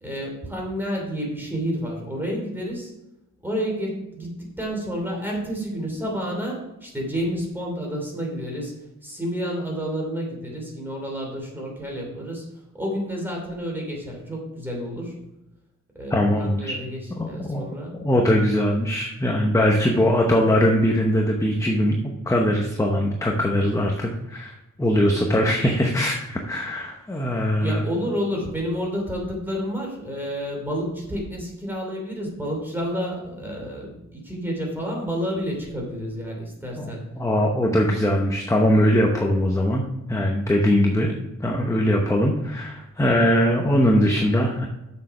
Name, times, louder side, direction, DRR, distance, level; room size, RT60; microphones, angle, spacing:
voice 1, 0.0-2.9 3.4-8.7 9.0-12.4 12.7-15.2 15.9-17.0 17.3-18.0 27.6-37.0, equal, 5° right, -1 dB, 2.8 m, -30 dB
voice 2, 16.1-16.8 17.2-17.7 17.9-22.0 22.3-27.8 36.8-39.8 40.1-41.1 41.4-44.7, equal, 10° left, 1 dB, 0.8 m, -21 dB
7.2 x 6.6 x 5.7 m, 0.93 s
wide cardioid pair, 165°, 30 cm